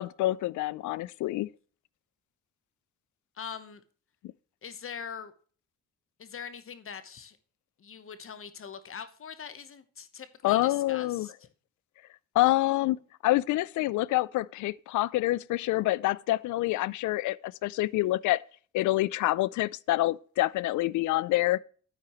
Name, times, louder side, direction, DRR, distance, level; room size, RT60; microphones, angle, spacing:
voice 1, 0.0-1.5 10.4-11.3 12.3-18.4 18.7-21.6, left 17 dB, 75° left, 0.5 m, -27 dB
voice 2, 3.3-3.8 4.6-5.3 6.2-7.4 7.8-11.3, left 7 dB, 45° left, 1.1 m, -42 dB
9.9 x 8.8 x 3.0 m
cardioid pair, 90°, 30 cm